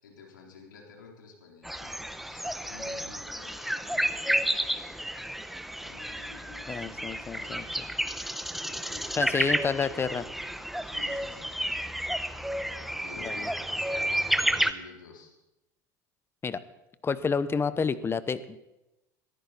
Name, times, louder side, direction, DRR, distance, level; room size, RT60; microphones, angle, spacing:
voice 1, 0.0-5.0 5.8-7.7 8.6-9.4 10.8-11.6 13.0-15.3, left 4 dB, 90° left, 0 dB, 4.0 m, -51 dB
sound 1, 1.6-14.7, equal, ahead, 1.0 m, -31 dB
voice 2, 6.7-7.8 9.1-10.3 13.2-13.5 16.4-16.6 17.0-18.6, left 5 dB, 25° left, 15 dB, 1.0 m, -29 dB
21.0 x 14.0 x 4.3 m, 0.94 s
hypercardioid pair, 90°, 10 cm